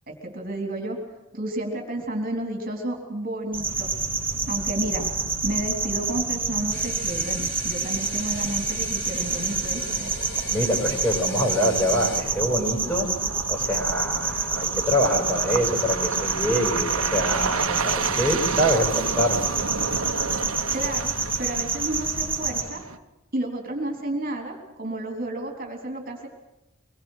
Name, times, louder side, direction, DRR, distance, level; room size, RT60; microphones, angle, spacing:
voice 1, 0.1-1.0 1.3-3.9 4.5-5.1 5.4-10.1 20.7-21.1 21.4-22.8 23.3-26.3, right 1 dB, 40° right, 2 dB, 3.6 m, -31 dB
sound 1, 3.5-22.6, right 4 dB, 10° right, 4.7 m, -28 dB
sound 2, 3.7-23.0, right 5 dB, 80° right, 1.3 m, -33 dB
sound 3, 6.7-12.2, left 2 dB, 50° left, 4.9 m, -40 dB
voice 2, 10.5-13.1 13.5-19.4, equal, 10° left, -1 dB, 6.3 m, -25 dB
24.5 x 21.5 x 6.5 m, 0.99 s
head